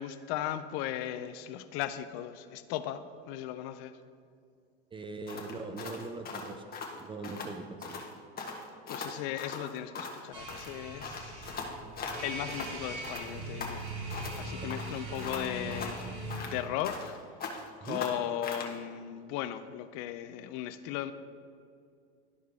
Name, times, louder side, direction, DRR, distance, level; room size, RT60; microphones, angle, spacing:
voice 1, 0.0-4.0 8.9-11.5 12.2-13.9 14.4-17.2 17.8-21.1, left 11 dB, 45° left, 12 dB, 0.4 m, -37 dB
voice 2, 4.9-6.6 7.0-8.0 17.8-18.0, right 3 dB, 15° right, 7 dB, 0.4 m, -40 dB
sound 1, 5.3-7.5 7.8-8.1 8.4-10.2 10.5-12.8 13.0-14.4 14.7-17.2 17.4-18.7, left 4 dB, 25° left, 1.2 m, -40 dB
sound 2, 10.3-16.4, right 2 dB, 50° right, 1.7 m, -40 dB
12.0 x 4.5 x 3.5 m, 2.3 s
hypercardioid pair, 95°, 34 cm